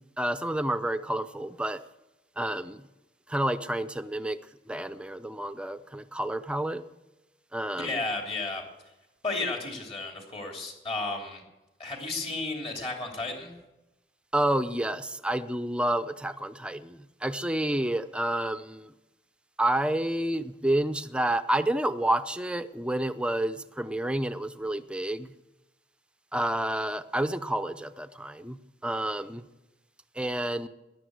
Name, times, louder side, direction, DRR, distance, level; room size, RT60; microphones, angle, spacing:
voice 1, 0.2-1.8 2.4-2.8 3.3-4.4 4.7-6.8 7.5-8.0 14.3-18.9 19.6-25.3 26.3-29.4 30.2-30.7, right 1 dB, 5° right, 12 dB, 0.5 m, -29 dB
voice 2, 7.8-8.6 9.2-11.4 11.8-13.5, left 3 dB, 35° left, 1 dB, 3.0 m, -33 dB
14.0 x 10.5 x 8.1 m, 1.0 s
head